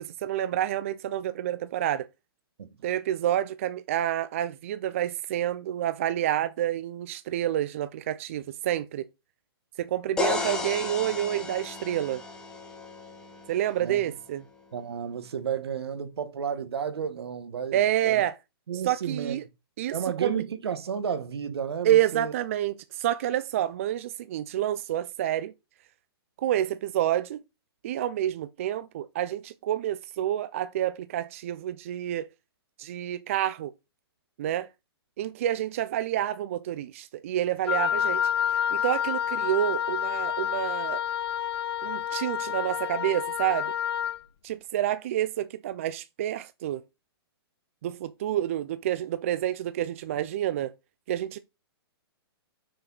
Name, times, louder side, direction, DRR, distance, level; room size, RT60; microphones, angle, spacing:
voice 1, 0.0-2.1 2.8-9.0 9.8-12.2 13.5-14.4 17.7-18.3 18.9-19.4 19.8-19.9 20.2-20.4 21.8-25.5 26.4-27.4 27.8-32.3 32.8-33.7 34.4-34.7 35.2-38.2 38.7-41.0 41.8-43.7 44.4-46.8 47.8-50.7 51.1-51.4, right 12 dB, 30° right, 0.4 m, -28 dB
sound 1, 10.2-14.0, left 4 dB, 5° left, 1.0 m, -34 dB
voice 2, 14.7-18.2 18.7-19.4 19.9-22.3, right 7 dB, 75° right, 1.2 m, -32 dB
Wind instrument woodwind instrument, 37.7-44.2, left 10 dB, 75° left, 0.7 m, -29 dB
6.3 x 4.6 x 3.9 m
hypercardioid pair, 170°, 13 cm